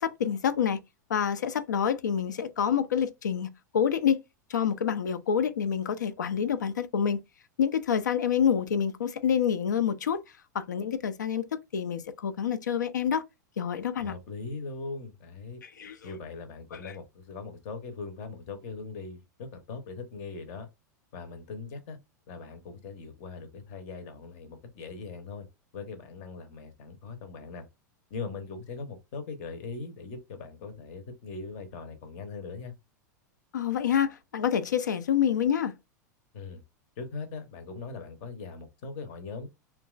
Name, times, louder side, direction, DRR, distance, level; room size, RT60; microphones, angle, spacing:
voice 1, 0.0-0.8 1.1-4.2 4.5-7.2 7.6-10.2 10.5-11.5 11.7-13.2 13.6-14.1 15.6-16.0 16.7-16.9 33.5-35.8, left 8 dB, 70° left, 0.3 m, -27 dB
voice 2, 14.0-15.6 16.0-20.7 21.1-22.0 22.3-25.5 25.7-27.6 28.1-32.7 36.3-36.6 37.0-39.5, left 4 dB, 50° left, 0.7 m, -40 dB
2.9 x 2.3 x 2.3 m
figure-of-eight pair, 90°, 10 cm